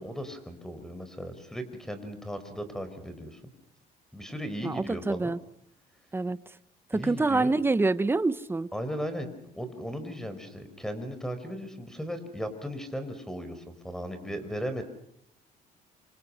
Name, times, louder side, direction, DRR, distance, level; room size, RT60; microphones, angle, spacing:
voice 1, 0.0-3.4 4.1-5.4 6.9-7.5 8.7-9.3 9.5-14.8, equal, 5° left, 10 dB, 5.0 m, -36 dB
voice 2, 4.6-5.4 6.1-6.4 6.9-8.7, right 3 dB, 15° right, 15 dB, 1.0 m, -26 dB
29.0 x 25.5 x 5.7 m, 0.72 s
cardioid pair, 110°, 17 cm